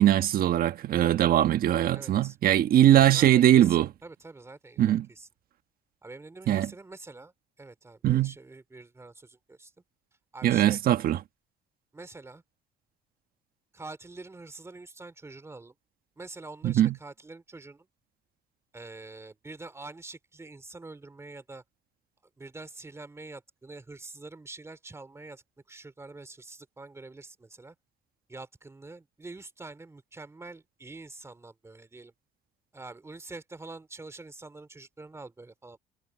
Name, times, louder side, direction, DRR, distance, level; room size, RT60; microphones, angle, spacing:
voice 1, 0.0-3.9 4.8-5.1 6.5-6.7 8.0-8.3 10.4-11.2 16.6-17.0, right 12 dB, 60° right, 1.3 m, -21 dB
voice 2, 1.9-2.4 3.1-5.3 6.0-7.3 7.6-9.7 10.3-10.8 11.9-12.4 13.7-15.7 16.2-17.9 18.7-21.6 22.4-25.4 25.7-27.7 28.3-32.1 32.7-35.8, right 3 dB, 15° right, 2.7 m, -45 dB
cardioid pair, 110°, 17 cm